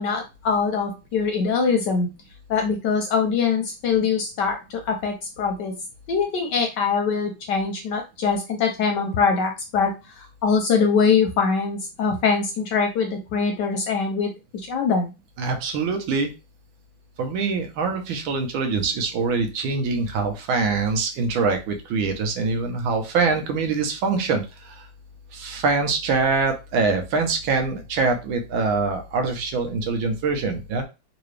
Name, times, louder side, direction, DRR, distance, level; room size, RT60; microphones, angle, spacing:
voice 1, 0.0-2.1 2.5-5.7 6.1-15.1, left 5 dB, 70° left, 4 dB, 1.0 m, -23 dB
voice 2, 15.4-16.3 17.2-24.9 25.3-30.8, right 4 dB, 75° right, 5 dB, 1.5 m, -24 dB
3.8 x 2.5 x 3.2 m, 0.27 s
omnidirectional pair, 2.3 m